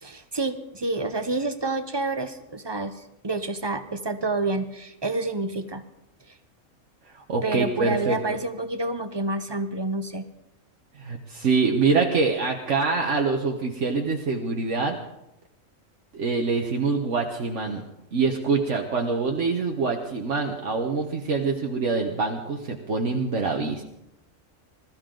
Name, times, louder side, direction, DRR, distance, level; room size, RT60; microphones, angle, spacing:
voice 1, 0.0-5.8 7.4-10.3, right 2 dB, 25° right, 9 dB, 0.8 m, -28 dB
voice 2, 7.3-8.4 11.0-15.0 16.1-17.8 18.1-23.8, right 4 dB, 65° right, 2 dB, 1.4 m, -25 dB
21.0 x 14.0 x 3.8 m, 0.85 s
omnidirectional pair, 1.4 m